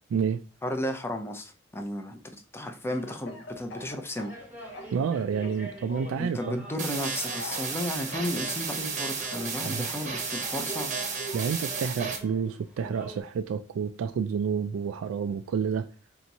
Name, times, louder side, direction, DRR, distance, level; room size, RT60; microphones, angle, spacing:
voice 1, 0.6-4.3 6.2-10.9, left 1 dB, 10° left, 0.6 m, -34 dB
Speech / Cough, 2.8-5.1 5.4-6.2 7.1-8.4 9.3-11.6, left 1 dB, 65° left, 0.8 m, -43 dB
sound 1, 3.5-13.2, right 2 dB, 10° right, 1.0 m, -45 dB
voice 2, 4.9-6.7 9.6-9.9 11.3-15.9, right 6 dB, 80° right, 0.3 m, -29 dB
sound 2, 6.8-12.2, right 5 dB, 40° right, 0.8 m, -33 dB
3.5 x 2.9 x 4.0 m
head